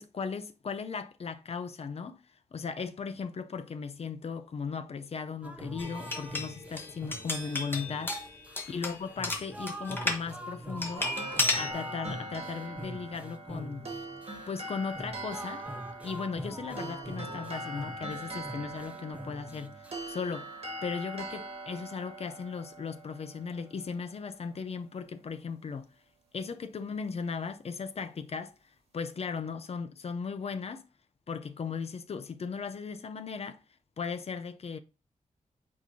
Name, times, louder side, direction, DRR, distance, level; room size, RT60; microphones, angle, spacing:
voice 1, 0.0-2.2 2.5-8.4 8.7-11.1 11.6-13.9 14.5-15.6 16.0-20.5 20.8-25.9 26.3-28.5 28.9-30.9 31.3-33.6 34.0-34.8, left 5 dB, 50° left, 0.5 m, -37 dB
sound 1, 5.4-21.2, right 1 dB, 10° right, 0.6 m, -44 dB
sound 2, 5.8-10.2 10.8-11.7, left 2 dB, 15° left, 1.0 m, -33 dB
sound 3, 11.0-24.2, right 1 dB, 50° right, 1.5 m, -42 dB
8.3 x 4.5 x 2.7 m
wide cardioid pair, 140°, 13 cm